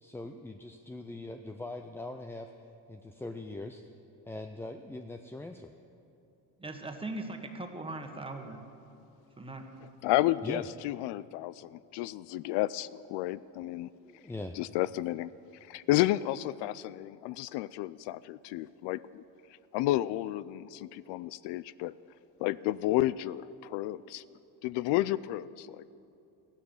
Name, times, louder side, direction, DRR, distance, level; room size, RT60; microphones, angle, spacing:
voice 1, 0.0-2.5 2.9-3.9 4.2-5.7 10.4-10.6 14.0-14.6, left 2 dB, 5° left, 6 dB, 0.4 m, -41 dB
voice 2, 6.6-8.6 9.4-9.6, right 2 dB, 15° right, 4 dB, 1.5 m, -39 dB
voice 3, 10.0-13.9 14.6-15.3 15.7-19.2 19.7-21.9 22.4-24.2 24.6-25.9, left 15 dB, 75° left, 18 dB, 0.5 m, -31 dB
15.0 x 11.5 x 7.1 m, 2.7 s
cardioid pair, 120°, 42 cm